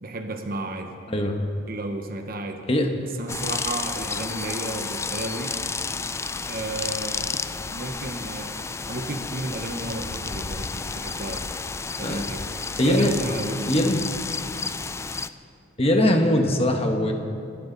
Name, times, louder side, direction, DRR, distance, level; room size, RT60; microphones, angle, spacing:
voice 1, 0.0-0.9 1.7-2.6 3.2-5.6 6.5-7.3 7.7-8.6 8.9-11.5 11.9-12.4 12.8-13.7, right 2 dB, 50° right, 5 dB, 1.0 m, -33 dB
voice 2, 1.1-1.4 2.7-2.9 12.0-12.2 12.8-13.2 13.7-14.0 15.8-17.1, left 1 dB, 30° left, 3 dB, 1.4 m, -21 dB
sound 1, 3.3-15.3, left 4 dB, 15° left, 0.3 m, -31 dB
26.5 x 12.0 x 4.0 m, 2.5 s
head